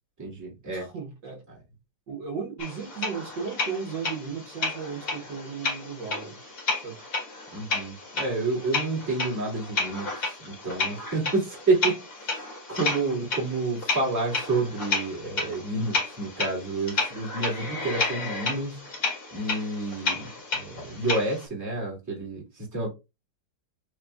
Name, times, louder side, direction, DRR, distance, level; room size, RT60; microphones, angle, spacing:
voice 1, 0.2-0.9 7.5-18.9 19.3-22.9, right 3 dB, 10° right, 2.0 m, -29 dB
voice 2, 0.7-1.4 2.1-7.0, right 6 dB, 65° right, 1.8 m, -36 dB
sound 1, 2.6-21.5, left 3 dB, 45° left, 2.0 m, -32 dB
6.6 x 3.1 x 2.4 m
omnidirectional pair, 2.2 m